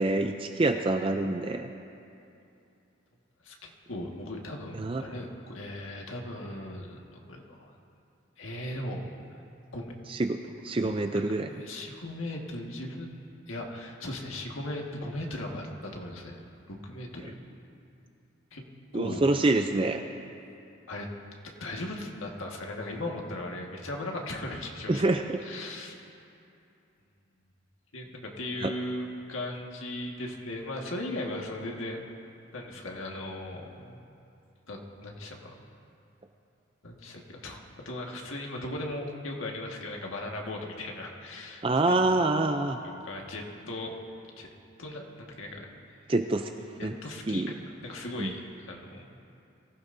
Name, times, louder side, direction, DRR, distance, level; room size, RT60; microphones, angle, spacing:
voice 1, 0.0-1.7 4.7-5.0 10.1-10.4 10.6-11.5 18.9-20.0 24.9-25.4 28.6-28.7 41.6-42.8 46.1-46.5 46.8-46.9 47.3-47.5 48.2-48.3, right 2 dB, 25° right, 6 dB, 0.4 m, -26 dB
voice 2, 3.4-7.0 7.3-7.7 8.4-9.0 9.7-9.9 10.8-10.9 11.3-16.4 16.7-17.3 18.5-18.6 18.9-19.3 20.9-21.1 21.4-25.0 25.4-26.0 27.9-32.0 32.5-34.0 34.7-35.5 36.8-42.0 43.0-44.0 44.4-44.5 44.8-45.7 46.8-49.0, left 1 dB, 85° left, 0 dB, 1.7 m, -38 dB
23.5 x 15.0 x 2.7 m, 2.6 s
head